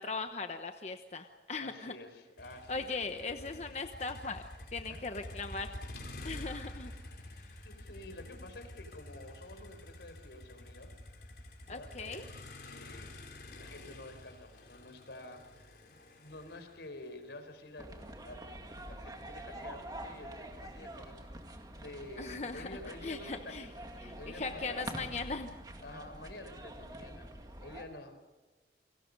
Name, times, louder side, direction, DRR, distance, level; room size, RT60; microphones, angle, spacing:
voice 1, 0.0-1.9 2.7-4.4 4.7-5.7 6.2-6.9 7.4-7.5 11.7-12.2 22.2-22.7 23.0-23.7 24.0-25.5, left 4 dB, 40° left, 6 dB, 1.0 m, -39 dB
voice 2, 1.6-3.8 4.9-5.0 7.6-10.9 11.6-13.2 13.5-15.4 15.9-24.9 25.8-27.3 27.6-28.4, left 1 dB, 80° left, 7 dB, 4.2 m, -50 dB
Motor vehicle (road), 2.4-18.5, left 1 dB, 65° left, 4.5 m, -49 dB
sound 1, 17.8-27.8, right 1 dB, 20° right, 2.2 m, -46 dB
29.5 x 23.0 x 5.4 m, 1.2 s
head